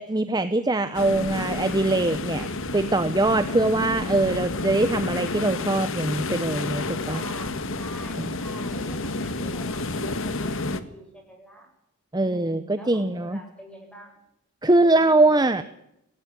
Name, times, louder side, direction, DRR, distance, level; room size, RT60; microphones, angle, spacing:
voice 1, 0.0-2.5 2.7-7.2 12.1-13.4 14.6-15.6, right 2 dB, 20° right, 11 dB, 0.8 m, -22 dB
sound 1, 0.9-10.8, left 2 dB, 65° left, 1.6 m, -30 dB
voice 2, 7.0-11.7 12.2-14.2 14.6-15.6, right 1 dB, 5° left, 3 dB, 7.6 m, -45 dB
17.5 x 17.5 x 9.8 m, 0.80 s
head